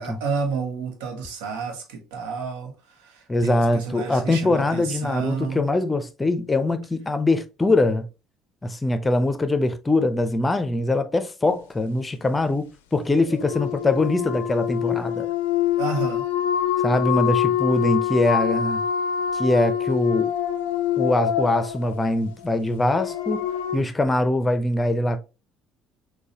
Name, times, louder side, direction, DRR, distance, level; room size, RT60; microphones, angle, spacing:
voice 1, 0.0-5.7 15.0-15.1 15.8-16.2, right 4 dB, 70° right, 0.9 m, -30 dB
voice 2, 3.3-8.1 8.6-15.3 16.8-18.8 19.3-20.3 21.0-23.4 23.7-25.2, left 2 dB, 20° left, 0.6 m, -22 dB
sound 1, 13.2-23.8, left 10 dB, 75° left, 0.4 m, -25 dB
6.2 x 2.2 x 2.8 m
figure-of-eight pair, 55°, 0 cm